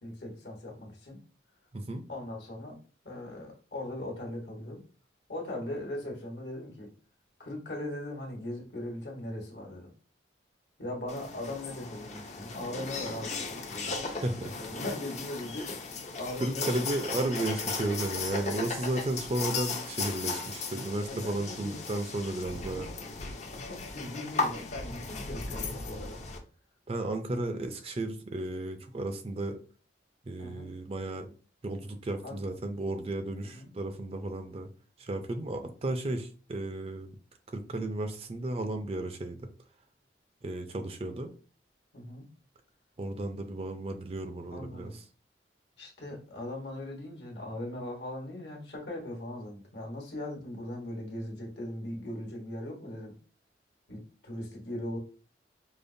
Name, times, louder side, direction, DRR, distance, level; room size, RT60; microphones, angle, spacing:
voice 1, 0.0-1.2 2.1-2.8 3.0-4.8 5.3-6.9 7.4-9.9 10.8-14.0 14.3-15.9 16.1-16.8 21.1-21.8 22.4-22.9 23.2-23.4 23.7-26.2 30.4-30.7 32.2-32.4 33.4-33.7 41.9-42.3 44.5-45.0 45.8-53.2 53.9-55.0, left 1 dB, 70° left, 0 dB, 1.3 m, -39 dB
sound 1, 11.1-26.4, left 4 dB, 40° left, 0.5 m, -36 dB
voice 2, 13.8-14.5 16.4-22.9 26.9-29.6 30.3-31.3 31.6-34.7 35.0-37.2 37.5-39.5 40.4-41.3 43.0-45.0, right 2 dB, 35° right, 7 dB, 0.4 m, -34 dB
5.1 x 2.1 x 2.6 m, 0.38 s
head